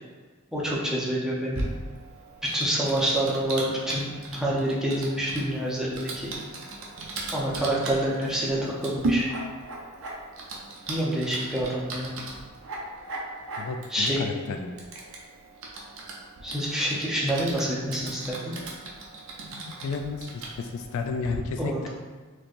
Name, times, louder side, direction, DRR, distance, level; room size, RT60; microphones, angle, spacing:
voice 1, 0.5-1.6 2.5-6.3 7.3-9.3 10.9-12.1 13.9-14.3 16.4-18.5 21.6-21.9, right 1 dB, ahead, -6 dB, 0.7 m, -27 dB
Typing, 1.5-21.4, right 2 dB, 65° right, 0.7 m, -37 dB
voice 2, 13.6-14.7 19.5-20.3 20.6-21.9, left 4 dB, 65° left, 6 dB, 0.3 m, -32 dB
4.2 x 3.1 x 2.5 m, 1.4 s
head